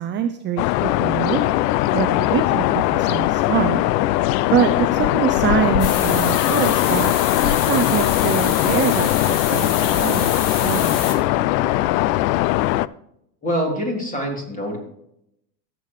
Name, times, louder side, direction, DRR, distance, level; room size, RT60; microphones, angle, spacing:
voice 1, 0.0-1.5 1.9-3.8 4.5-10.3 10.6-11.1, right 9 dB, 25° right, 8 dB, 0.5 m, -24 dB
sound 1, 0.6-12.9, left 16 dB, 75° left, 0.5 m, -20 dB
sound 2, 5.8-11.1, left 6 dB, 55° left, 2.2 m, -28 dB
voice 2, 13.4-14.8, equal, 15° left, 0 dB, 3.5 m, -25 dB
17.0 x 7.7 x 3.2 m, 0.77 s
supercardioid pair, 115°, 50 cm